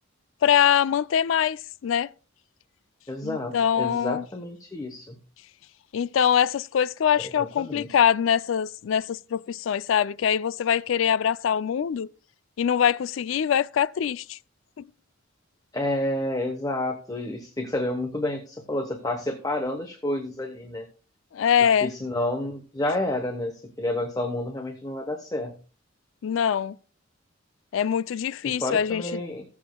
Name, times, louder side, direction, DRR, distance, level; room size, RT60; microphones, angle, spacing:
voice 1, 0.4-2.1 3.2-4.2 5.9-12.1 12.6-14.4 14.8-14.9 21.3-21.9 26.2-26.8 27.7-29.2, left 8 dB, 70° left, 0.4 m, -23 dB
voice 2, 3.1-5.2 7.2-7.9 15.7-20.9 21.6-25.6 28.4-29.4, left 1 dB, 20° left, 0.9 m, -30 dB
19.0 x 7.2 x 2.2 m
head